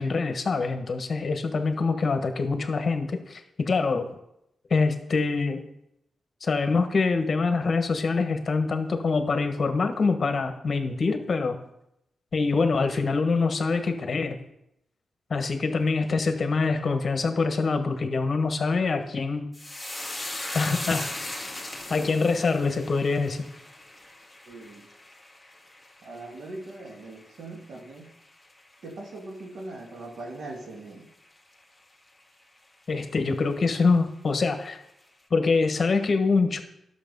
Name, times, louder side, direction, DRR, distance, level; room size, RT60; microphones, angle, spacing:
voice 1, 0.0-4.1 4.7-5.6 6.4-11.6 12.3-14.4 15.3-19.5 20.5-21.5 21.9-23.4 32.9-34.8 35.3-36.6, left 4 dB, 50° left, 7 dB, 1.2 m, -25 dB
sound 1, 19.5-28.1 28.4-29.1 29.4-29.6, left 1 dB, 5° left, 1.7 m, -38 dB
voice 2, 24.5-24.9 26.0-28.1 28.8-31.1, right 2 dB, 80° right, 2 dB, 2.0 m, -40 dB
11.5 x 6.7 x 5.4 m, 0.80 s
cardioid pair, 100°, 0 cm